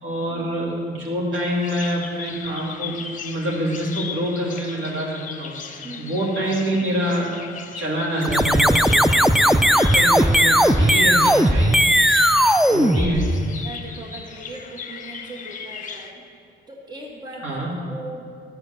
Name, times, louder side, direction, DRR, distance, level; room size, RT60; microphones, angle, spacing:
voice 1, 0.0-5.6 6.0-7.4 7.7-11.9 12.7-13.3 17.4-17.7, right 1 dB, 70° right, -4 dB, 3.0 m, -26 dB
Bird vocalization bird call bird song, 1.3-16.1, left 6 dB, 40° left, 0.9 m, -37 dB
sound 1, 8.2-13.7, equal, ahead, 0.3 m, -17 dB
voice 2, 13.6-16.2 16.7-18.2, right 2 dB, 20° right, -1 dB, 1.7 m, -38 dB
12.0 x 7.0 x 7.0 m, 2.2 s
cardioid pair, 90°, 20 cm